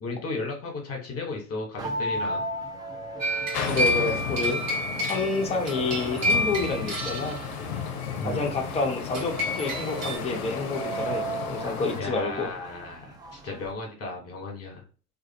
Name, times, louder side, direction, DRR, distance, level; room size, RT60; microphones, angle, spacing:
voice 1, 0.0-2.4 8.2-8.5 11.9-14.8, left 3 dB, 30° left, 2 dB, 1.2 m, -35 dB
sound 1, 1.8-13.7, right 2 dB, 10° right, 0.3 m, -37 dB
sound 2, 3.2-7.7 9.1-10.2, left 1 dB, 35° right, 1.2 m, -29 dB
sound 3, 3.5-12.0, left 7 dB, 70° left, 0.6 m, -34 dB
voice 2, 3.7-4.6 5.1-7.4 8.2-12.5, left 3 dB, 15° left, 1 dB, 0.7 m, -29 dB
2.5 x 2.4 x 2.8 m, 0.36 s
figure-of-eight pair, 70°, 45 cm